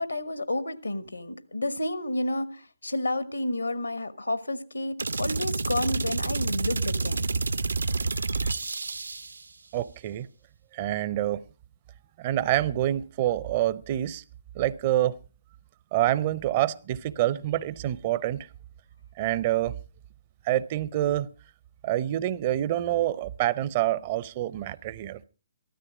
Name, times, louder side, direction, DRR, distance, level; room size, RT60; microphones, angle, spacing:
voice 1, 0.0-7.3, left 1 dB, 80° left, 1.2 m, -30 dB
sound 1, 5.0-9.4, right 3 dB, 70° right, 0.7 m, -29 dB
voice 2, 9.7-10.3 10.7-11.4 12.2-14.2 14.5-15.2 15.9-18.5 19.2-19.8 20.4-21.3 21.8-25.2, right 13 dB, 35° right, 0.6 m, -27 dB
14.5 x 13.0 x 4.8 m
figure-of-eight pair, 130°, 0 cm